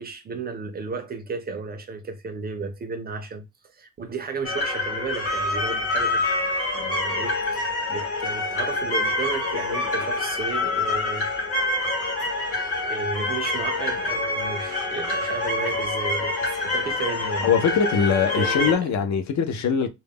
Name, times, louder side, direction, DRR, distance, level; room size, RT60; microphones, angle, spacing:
voice 1, 0.0-6.2 6.7-11.3 12.3-17.5 18.3-18.9, right 4 dB, 35° right, 0.4 m, -34 dB
sound 1, 4.4-18.8, left 2 dB, 45° left, 0.9 m, -26 dB
voice 2, 17.4-19.9, left 6 dB, 65° left, 0.5 m, -22 dB
2.2 x 2.0 x 3.3 m
wide cardioid pair, 165°, 30 cm